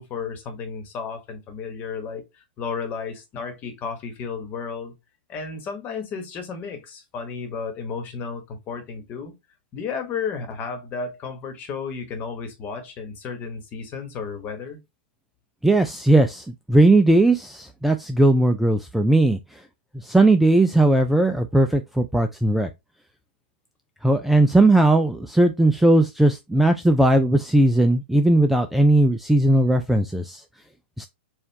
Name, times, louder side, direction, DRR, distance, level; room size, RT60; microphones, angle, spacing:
voice 1, 0.0-4.9 5.3-9.3 9.7-14.8, left 5 dB, 30° left, 1.2 m, -33 dB
voice 2, 15.6-19.6 20.0-22.7 24.0-30.4 31.0-31.1, right 2 dB, 5° right, 0.3 m, -18 dB
4.4 x 2.4 x 3.4 m
hypercardioid pair, 120°, 6 cm